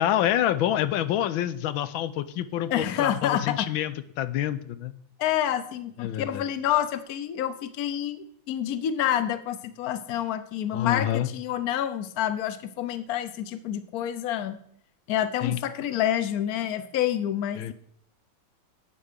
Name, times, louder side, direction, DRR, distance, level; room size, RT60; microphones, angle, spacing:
voice 1, 0.0-4.9 6.0-6.4 10.7-11.3 15.4-15.6 17.6-17.7, left 11 dB, 90° left, 14 dB, 1.5 m, -27 dB
voice 2, 2.7-3.7 5.2-14.6 15.1-17.7, left 11 dB, 60° left, 12 dB, 1.2 m, -28 dB
11.5 x 8.8 x 5.1 m, 0.66 s
omnidirectional pair, 2.2 m